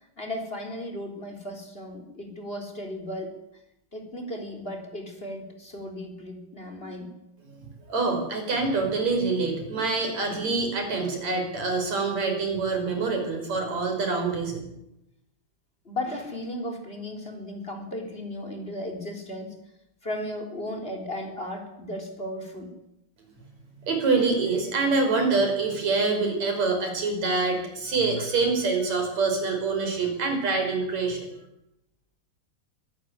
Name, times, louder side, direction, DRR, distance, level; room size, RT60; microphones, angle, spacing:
voice 1, 0.2-3.4 3.9-7.1 15.8-19.5 20.0-22.7 28.2-28.3, left 1 dB, 15° left, 3 dB, 3.8 m, -35 dB
voice 2, 7.6-14.6 23.9-31.3, right 3 dB, 40° right, 4 dB, 6.7 m, -26 dB
24.5 x 15.0 x 9.8 m, 0.84 s
omnidirectional pair, 4.8 m